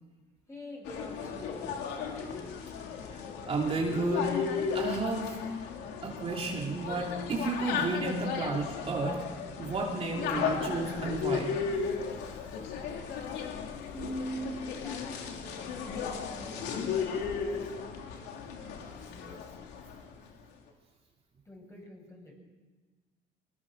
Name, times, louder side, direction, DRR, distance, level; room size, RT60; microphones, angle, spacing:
voice 1, 0.5-3.3 13.9-17.9 18.9-19.6 21.4-22.4, equal, 15° left, 0 dB, 7.8 m, -45 dB
sound 1, 0.8-20.1, left 6 dB, 85° left, 3.2 m, -35 dB
voice 2, 3.5-4.3 4.7-5.4 6.0-9.3 9.6-11.5, right 3 dB, 35° right, -1 dB, 3.0 m, -32 dB
23.0 x 20.0 x 6.6 m, 1.3 s
cardioid pair, 110°, 17 cm